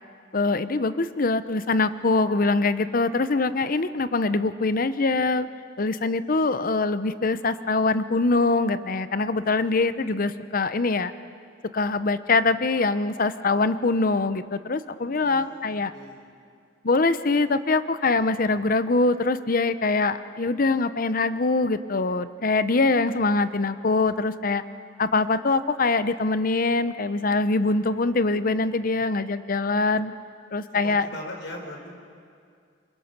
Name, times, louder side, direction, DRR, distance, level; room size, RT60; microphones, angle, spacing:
voice 1, 0.3-5.5 5.8-11.1 11.7-15.9 16.8-24.6 25.0-30.1 30.5-31.1, left 3 dB, 50° left, 13 dB, 0.8 m, -23 dB
voice 2, 15.1-16.3 30.8-31.9, left 1 dB, 75° left, 2 dB, 4.6 m, -40 dB
28.5 x 25.0 x 6.0 m, 2.2 s
head